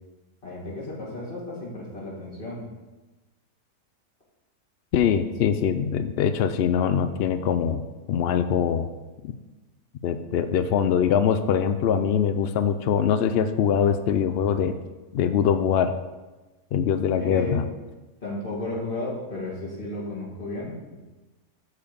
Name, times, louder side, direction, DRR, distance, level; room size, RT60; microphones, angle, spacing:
voice 1, 0.4-2.6 17.1-17.7 18.2-21.0, left 2 dB, 35° left, -5 dB, 2.4 m, -33 dB
voice 2, 4.9-7.8 8.1-8.9 9.2-9.3 10.0-14.8 15.1-15.9 16.7-17.6, left 8 dB, 80° left, 10 dB, 0.5 m, -23 dB
8.1 x 4.5 x 7.0 m, 1.2 s
omnidirectional pair, 1.6 m